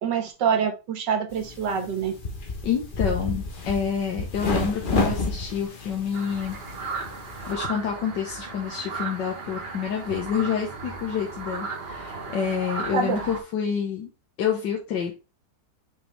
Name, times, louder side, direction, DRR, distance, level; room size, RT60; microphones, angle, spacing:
voice 1, 0.0-2.1 12.9-13.2, right 6 dB, 80° right, 5 dB, 1.9 m, -25 dB
sound 1, 1.3-7.5, left 3 dB, 35° left, 1.1 m, -30 dB
voice 2, 2.6-6.6 7.5-14.1 14.4-15.1, left 7 dB, 80° left, 0 dB, 1.8 m, -28 dB
sound 2, 6.1-13.4, right 4 dB, 35° right, 1.3 m, -35 dB
6.0 x 4.9 x 3.3 m, 0.28 s
omnidirectional pair, 1.9 m